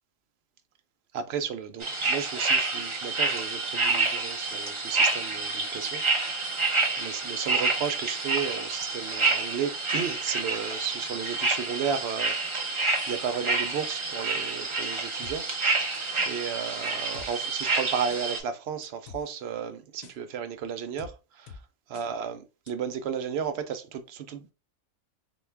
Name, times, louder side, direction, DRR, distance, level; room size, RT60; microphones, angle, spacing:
voice 1, 1.1-6.5 7.0-15.5 16.2-21.6 21.9-24.5, right 7 dB, 65° right, 0.7 m, -34 dB
sound 1, 1.8-18.4, right 3 dB, 30° right, 0.6 m, -28 dB
sound 2, 15.2-15.4 15.9-16.3 17.1-17.3 18.1-18.2 18.8-19.2 20.0-20.2 21.0-21.1 21.5-21.6 21.9-22.1 22.7-22.8, left 5 dB, 90° left, 1.1 m, -45 dB
3.7 x 2.3 x 3.3 m
omnidirectional pair, 1.4 m